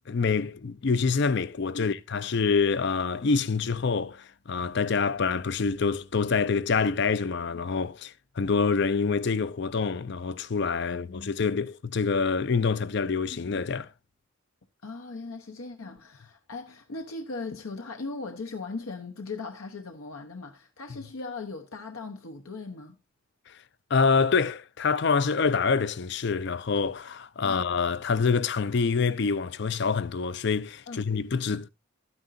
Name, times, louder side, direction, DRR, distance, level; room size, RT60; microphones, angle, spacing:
voice 1, 0.1-13.9 23.5-23.6 23.9-31.7, left 5 dB, 55° left, 0.5 m, -26 dB
voice 2, 10.9-11.5 13.3-13.5 14.8-23.0 27.4-27.7 30.9-31.0, left 3 dB, 85° left, 0.9 m, -39 dB
12.0 x 9.7 x 2.6 m
head